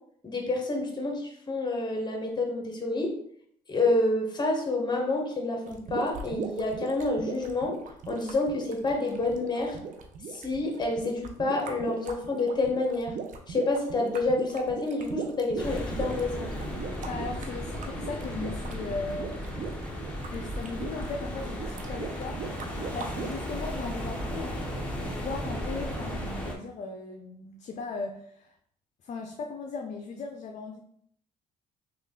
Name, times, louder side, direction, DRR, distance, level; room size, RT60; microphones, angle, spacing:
voice 1, 0.2-3.1 3.7-7.8 8.1-9.8 10.3-13.1 13.5-16.5, left 2 dB, 30° left, 1 dB, 1.1 m, -28 dB
sound 1, 5.6-23.4, right 5 dB, 55° right, 0.6 m, -40 dB
sound 2, 15.6-26.5, equal, 5° left, 0.9 m, -35 dB
voice 2, 17.0-19.6 20.3-22.4 22.9-24.6 25.0-28.5 29.0-30.8, left 4 dB, 50° left, 3 dB, 0.4 m, -37 dB
3.1 x 2.4 x 3.6 m, 0.68 s
supercardioid pair, 80°, 16 cm